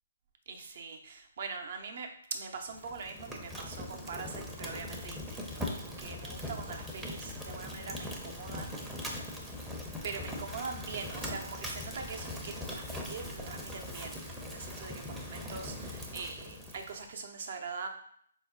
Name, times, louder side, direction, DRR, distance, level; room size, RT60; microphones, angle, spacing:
voice 1, 0.5-9.0 10.0-17.9, right 4 dB, 55° right, 4 dB, 0.6 m, -42 dB
Fire, 2.7-17.1, left 1 dB, 5° right, 0.5 m, -41 dB
4.5 x 2.1 x 3.6 m, 0.65 s
figure-of-eight pair, 140°, 0 cm